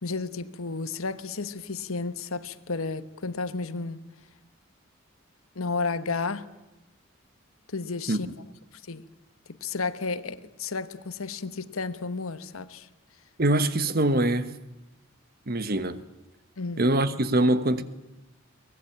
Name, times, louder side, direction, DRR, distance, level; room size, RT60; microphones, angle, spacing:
voice 1, 0.0-4.0 5.5-6.5 7.7-8.3 8.9-9.0 9.6-12.9 16.6-16.9, left 4 dB, 85° left, 1.3 m, -32 dB
voice 2, 13.4-14.5 15.5-16.0 16.8-17.8, right 1 dB, 45° right, 1.3 m, -23 dB
23.5 x 19.5 x 8.8 m
head